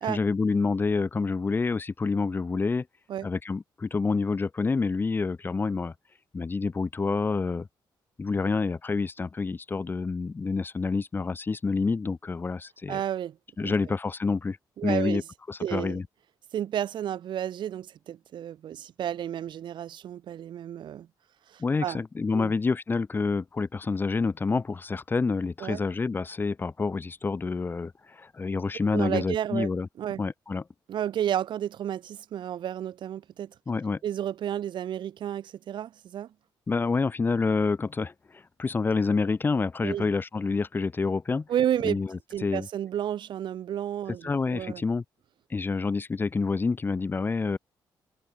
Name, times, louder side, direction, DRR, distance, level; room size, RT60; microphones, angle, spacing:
voice 1, 0.1-2.9 3.2-5.9 6.3-7.7 8.2-13.0 13.6-14.6 14.8-15.2 15.5-16.0 21.6-29.9 30.2-30.6 33.7-34.0 36.7-41.5 41.8-42.7 44.2-45.0 45.5-47.6, left 4 dB, 25° left, 5.2 m, -28 dB
voice 2, 12.9-13.7 14.8-15.2 15.6-16.0 16.5-21.1 21.5-22.0 22.3-22.5 25.6-25.8 28.9-29.7 30.0-30.2 30.9-33.5 34.0-36.3 39.8-40.1 41.5-42.0 42.3-44.8, right 10 dB, 70° right, 3.7 m, -31 dB
cardioid pair, 155°, 8 cm